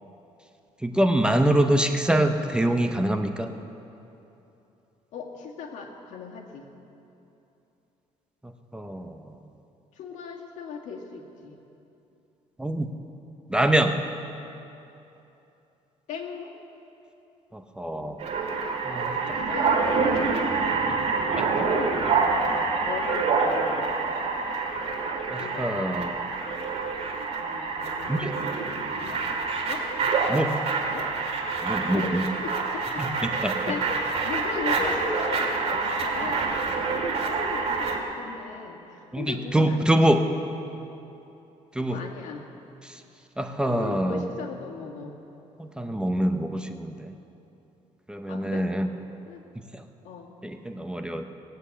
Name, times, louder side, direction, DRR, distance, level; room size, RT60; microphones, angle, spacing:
voice 1, 0.8-3.5 8.7-9.3 12.6-12.9 13.5-14.0 17.5-18.3 18.8-19.1 21.1-21.5 25.3-26.2 28.1-28.4 30.3-30.6 31.6-32.3 33.0-33.6 39.1-40.3 41.7-42.0 42.8-43.0 43.4-44.2 45.6-47.1 48.1-48.9 49.6-49.8 50.4-51.3, right 1 dB, 5° right, 6 dB, 0.7 m, -25 dB
voice 2, 5.1-6.7 9.9-11.6 16.1-16.5 19.4-22.0 22.5-22.6 22.9-23.9 25.4-26.1 27.4-28.2 28.9-29.4 29.7-29.9 30.9-31.1 31.8-33.1 33.6-36.5 36.9-40.1 41.8-42.4 43.7-45.1 48.3-48.7 49.3-49.4 50.0-50.3, left 5 dB, 85° left, 1 dB, 1.8 m, -37 dB
sound 1, 18.2-38.0, right 4 dB, 60° right, 2.1 m, -27 dB
19.0 x 7.9 x 8.4 m, 2.9 s
cardioid pair, 130°, 12 cm